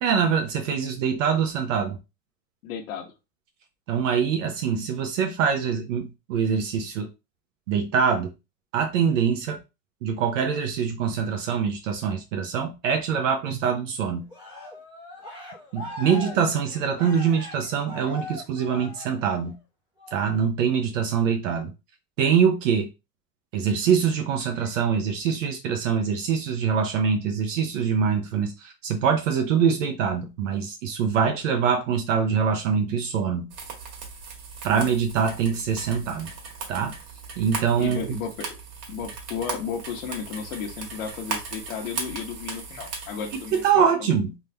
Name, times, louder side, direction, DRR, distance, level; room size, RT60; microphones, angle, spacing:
voice 1, 0.0-2.0 3.9-7.1 7.7-8.3 8.7-9.6 10.0-14.2 15.7-19.5 20.1-21.7 22.2-22.9 23.5-33.5 34.6-36.3 36.7-36.9 37.4-38.2 43.3-44.3, right 7 dB, 50° right, 0.7 m, -24 dB
voice 2, 2.6-3.1 16.0-16.4 37.8-38.6 38.9-44.2, left 7 dB, 55° left, 1.2 m, -34 dB
Cheering, 14.3-19.5 20.0-20.4, left 2 dB, 5° right, 0.3 m, -41 dB
sound 1, 33.5-43.7, right 5 dB, 65° right, 1.7 m, -37 dB
3.6 x 2.7 x 3.3 m
supercardioid pair, 160°, 49 cm